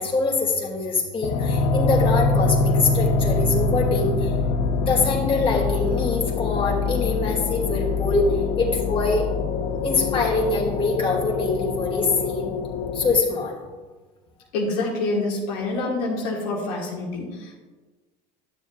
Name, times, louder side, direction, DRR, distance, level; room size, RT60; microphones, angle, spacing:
voice 1, 0.0-4.3 4.9-8.2 8.6-9.2 9.8-12.5 12.9-13.5, left 3 dB, 25° left, -2 dB, 2.6 m, -24 dB
sound 1, 1.2-13.2, left 4 dB, 65° left, 0.9 m, -24 dB
voice 2, 14.5-17.6, left 2 dB, 85° left, -3 dB, 1.8 m, -27 dB
12.0 x 7.1 x 2.5 m, 1.3 s
hypercardioid pair, 80°, 21 cm